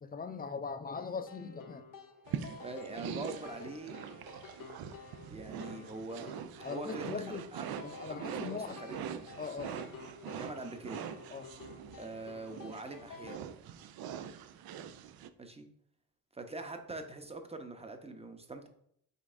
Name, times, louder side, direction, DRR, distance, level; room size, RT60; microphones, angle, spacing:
voice 1, 0.0-1.9 6.6-7.5 7.8-8.8 9.4-9.9 11.3-11.5, left 5 dB, 25° left, 10 dB, 0.4 m, -40 dB
sound 1, 0.9-13.4, left 4 dB, 55° left, 0.8 m, -51 dB
sound 2, 2.3-15.3, right 8 dB, 70° right, 0.5 m, -43 dB
voice 2, 2.6-3.9 5.3-6.3 6.7-7.7 8.1-9.3 10.3-11.0 12.0-13.4 15.4-15.7 16.3-18.7, right 2 dB, 15° right, 6 dB, 0.8 m, -43 dB
5.3 x 3.4 x 2.6 m, 0.68 s
supercardioid pair, 60°, 38 cm